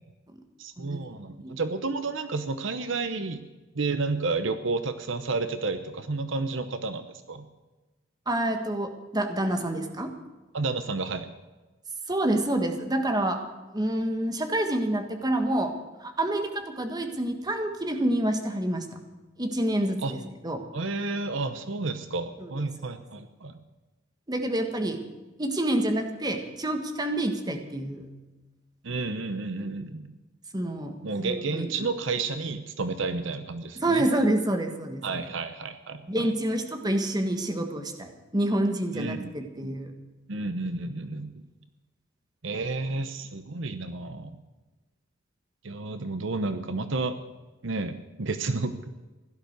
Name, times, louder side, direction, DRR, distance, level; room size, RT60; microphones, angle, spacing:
voice 1, 0.6-3.4 3.7-7.5 10.5-11.3 20.0-20.1 20.7-23.6 28.8-30.1 31.0-34.0 35.0-36.0 38.9-39.3 39.6-39.7 40.3-41.3 42.4-44.4 45.6-47.2 47.6-48.9, right 3 dB, 65° right, 10 dB, 0.9 m, -31 dB
voice 2, 8.2-10.1 12.1-13.4 13.7-18.9 19.4-20.6 22.4-22.5 24.3-25.0 25.4-28.1 30.5-30.9 31.2-31.9 33.7-35.2 36.1-39.9, right 1 dB, 20° right, 5 dB, 1.6 m, -28 dB
16.5 x 12.0 x 6.6 m, 1.2 s
head